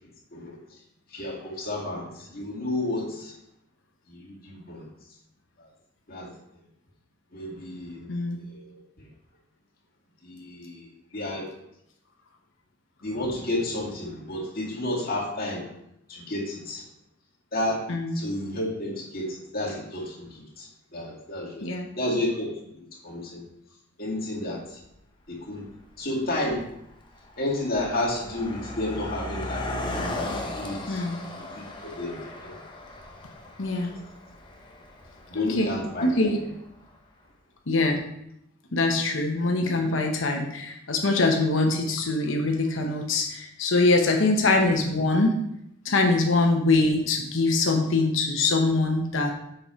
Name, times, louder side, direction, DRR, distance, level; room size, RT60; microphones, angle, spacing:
voice 1, 1.1-3.3 4.1-4.8 5.6-5.7 6.1-6.3 7.3-8.1 8.4-9.1 10.2-11.5 13.0-15.7 16.1-16.8 17.5-17.8 18.1-20.7 20.9-21.7 22.0-22.5 23.0-23.4 24.0-24.8 25.3-25.7 26.0-26.6 27.4-29.7 30.3-31.0 31.3-32.5 33.6-34.0 35.3-36.1, left 1 dB, 50° left, -5 dB, 2.4 m, -31 dB
voice 2, 8.1-8.4 17.9-18.2 21.6-21.9 30.9-31.2 33.6-34.0 35.3-35.7 36.0-36.4 37.7-38.0 38.7-45.4 45.8-49.3, left 2 dB, 80° left, 2 dB, 1.0 m, -23 dB
Car passing by, 24.8-24.9 25.7-26.0 26.2-36.7, left 1 dB, 25° left, 0.9 m, -37 dB
6.8 x 5.4 x 4.4 m, 0.78 s
head